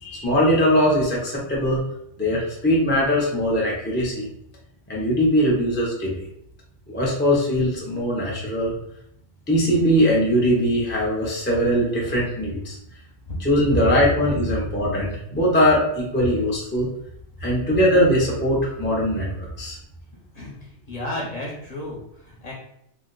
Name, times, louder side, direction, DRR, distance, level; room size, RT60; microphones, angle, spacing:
voice 1, 0.0-1.8 2.2-4.3 4.9-6.2 6.9-8.7 9.5-12.8 13.4-16.9 17.4-19.8, equal, 15° left, -4 dB, 0.5 m, -21 dB
voice 2, 20.9-22.0 22.2-22.5, left 1 dB, 40° left, -4 dB, 0.8 m, -32 dB
2.6 x 2.2 x 3.8 m, 0.75 s
omnidirectional pair, 1.2 m